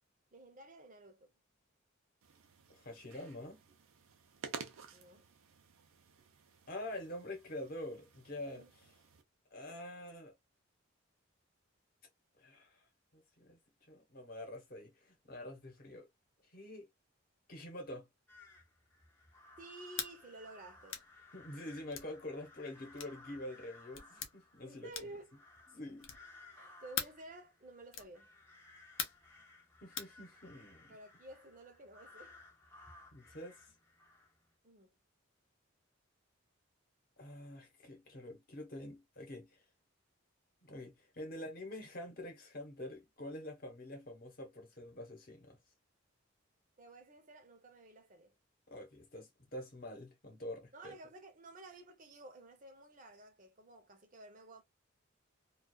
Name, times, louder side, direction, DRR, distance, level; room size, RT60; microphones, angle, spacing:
voice 1, 0.3-1.3 4.9-5.3 8.5-8.7 19.6-21.0 24.6-25.4 26.6-28.3 30.9-32.4 34.6-34.9 46.8-48.4 50.7-54.6, right 2 dB, 40° right, 0.6 m, -53 dB
sound 1, 2.2-9.2, right 5 dB, 85° right, 0.5 m, -52 dB
voice 2, 2.7-3.6 6.7-8.7 9.5-10.3 12.4-12.8 13.1-13.6 13.9-16.1 16.5-16.9 17.5-18.1 21.3-25.1 25.7-26.1 29.8-31.0 33.1-33.6 37.2-39.6 40.6-45.6 48.7-50.9, left 1 dB, 45° left, 0.9 m, -46 dB
sound 2, 18.3-34.5, left 2 dB, 10° left, 0.5 m, -60 dB
sound 3, 19.9-20.1 20.9-21.1 21.9-22.1 23.0-23.2 23.9-24.3 24.9-25.2 26.0-26.3 26.9-27.2 27.9-28.1 29.0-29.3 30.0-30.1, left 8 dB, 75° left, 0.6 m, -41 dB
2.3 x 2.3 x 2.3 m
head